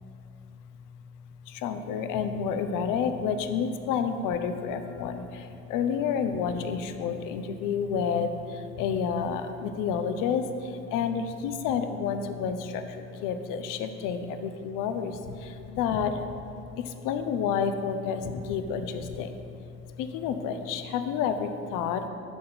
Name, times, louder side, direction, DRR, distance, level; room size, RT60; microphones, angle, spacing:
voice 1, 1.4-16.3 16.8-22.1, left 6 dB, 45° left, 8 dB, 0.7 m, -30 dB
11.0 x 3.8 x 6.0 m, 2.7 s
hypercardioid pair, 75°, 44 cm